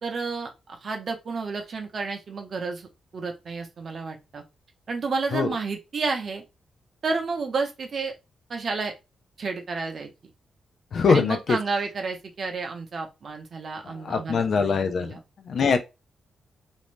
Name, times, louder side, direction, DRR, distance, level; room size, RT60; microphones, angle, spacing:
voice 1, 0.0-4.4 4.9-6.4 7.0-8.1 8.5-8.9 9.4-10.1 11.1-15.2, right 4 dB, 40° right, 0.6 m, -31 dB
voice 2, 10.9-11.6 13.9-15.1 15.4-15.8, left 5 dB, 50° left, 0.4 m, -22 dB
2.5 x 2.1 x 3.1 m
wide cardioid pair, 160°, 0 cm